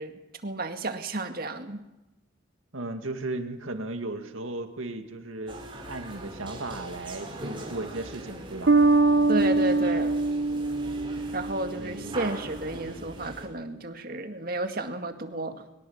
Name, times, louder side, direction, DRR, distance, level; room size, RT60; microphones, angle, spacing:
voice 1, 0.0-1.8 9.3-10.2 11.3-15.6, right 2 dB, 45° right, 6 dB, 2.1 m, -32 dB
voice 2, 2.7-5.6 5.9-8.7 11.8-12.2, right 2 dB, 85° right, 6 dB, 2.1 m, -35 dB
sound 1, 5.5-13.5, right 1 dB, 25° right, 4.6 m, -41 dB
Bass guitar, 8.7-12.2, right 3 dB, 65° right, 1.3 m, -23 dB
22.5 x 21.0 x 7.3 m, 0.94 s
head